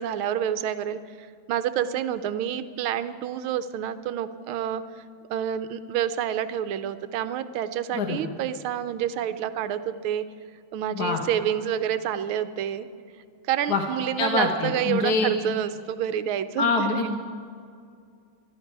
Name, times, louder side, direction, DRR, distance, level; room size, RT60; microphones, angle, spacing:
voice 1, 0.0-4.8 5.3-10.3 10.7-12.9 13.5-17.1, right 10 dB, 80° right, 12 dB, 1.5 m, -28 dB
voice 2, 7.9-8.3 10.9-11.2 13.7-13.8 14.2-15.5 16.6-17.2, left 4 dB, 55° left, 3 dB, 1.5 m, -25 dB
21.5 x 13.0 x 4.7 m, 2.3 s
omnidirectional pair, 2.3 m